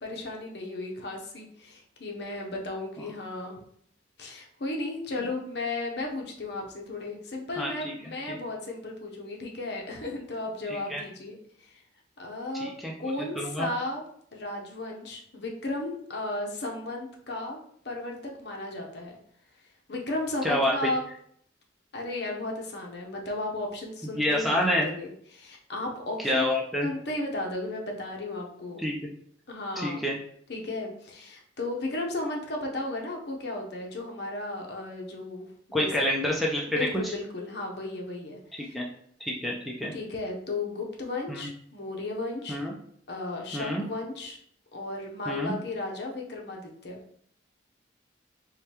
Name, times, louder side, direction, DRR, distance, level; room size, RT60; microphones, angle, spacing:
voice 1, 0.0-3.6 4.2-11.8 12.2-12.7 13.0-14.0 14.3-17.6 17.8-19.2 19.9-21.0 21.9-26.4 26.8-28.8 29.5-30.0 30.5-35.9 36.7-38.7 39.9-42.6 43.1-44.4 44.7-47.0, left 2 dB, 60° left, 0 dB, 0.7 m, -34 dB
voice 2, 7.6-7.9 8.3-8.4 10.7-11.0 12.5-12.9 13.3-13.7 20.4-20.9 24.1-24.9 26.2-26.9 28.8-29.0 29.8-30.2 35.7-36.8 37.0-37.1 38.5-38.9 39.2-39.9 41.3-41.5 42.5-42.8 43.5-43.9 45.3-45.6, left 1 dB, ahead, -2 dB, 0.4 m, -28 dB
4.8 x 2.2 x 2.8 m, 0.65 s
head